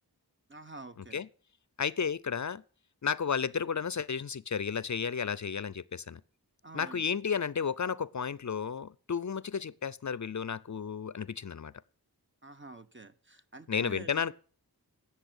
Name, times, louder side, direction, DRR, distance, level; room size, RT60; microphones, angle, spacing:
voice 1, 0.5-1.2 6.6-7.0 12.4-14.2, right 3 dB, 30° right, 1.0 m, -48 dB
voice 2, 1.8-2.6 3.0-6.2 6.7-11.7 13.7-14.3, left 6 dB, 50° left, 0.5 m, -33 dB
10.0 x 6.8 x 8.6 m
wide cardioid pair, 45°, 38 cm